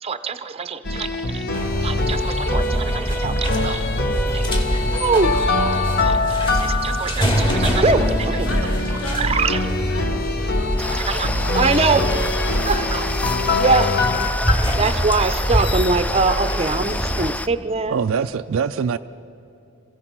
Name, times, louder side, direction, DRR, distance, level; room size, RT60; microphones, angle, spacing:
voice 1, 0.0-1.4 1.8-3.8 4.3-4.5 4.9-5.3 6.0-6.2 6.6-8.5 9.1-9.6 10.8-12.1 12.6-13.1 13.5-14.3 14.8-18.0, right 4 dB, 30° right, 11 dB, 0.6 m, -23 dB
sound 1, 0.8-14.5, left 2 dB, 45° left, 1.2 m, -24 dB
sound 2, 1.5-17.3, equal, 25° left, 2.4 m, -25 dB
voice 2, 5.3-6.0 8.4-11.3 11.9-12.8, left 1 dB, 70° left, -1 dB, 3.6 m, -36 dB
sound 3, 10.8-17.5, left 1 dB, 5° left, 0.3 m, -29 dB
voice 3, 17.9-19.0, right 6 dB, 70° right, 9 dB, 0.4 m, -23 dB
27.0 x 16.0 x 6.1 m, 2.8 s
head